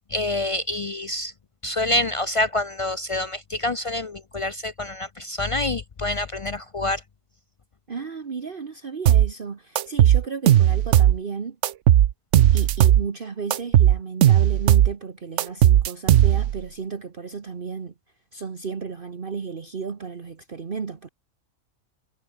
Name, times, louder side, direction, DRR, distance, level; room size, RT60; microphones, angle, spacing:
voice 1, 0.1-1.3 1.6-7.0, left 2 dB, 60° left, 0.3 m, -27 dB
voice 2, 7.9-11.6 12.5-17.9 18.3-21.1, right 5 dB, 40° right, 1.4 m, -33 dB
sound 1, 9.1-9.3 9.8-11.2 11.6-13.1 13.5-14.9 15.4-16.6, right 11 dB, 65° right, 1.0 m, -16 dB
omnidirectional pair, 1.4 m